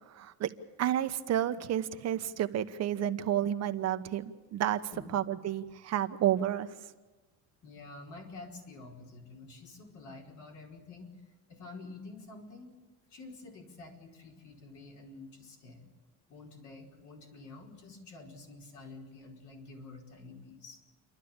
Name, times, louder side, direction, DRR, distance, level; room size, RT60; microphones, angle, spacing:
voice 1, 0.1-0.5 0.8-4.8 5.1-6.7, right 11 dB, 55° right, 9 dB, 1.0 m, -30 dB
voice 2, 7.6-11.1 11.5-12.7 13.1-15.8 16.3-20.8, left 3 dB, 60° left, 0 dB, 4.9 m, -49 dB
29.0 x 12.0 x 8.7 m, 1.2 s
cardioid pair, 135°, 32 cm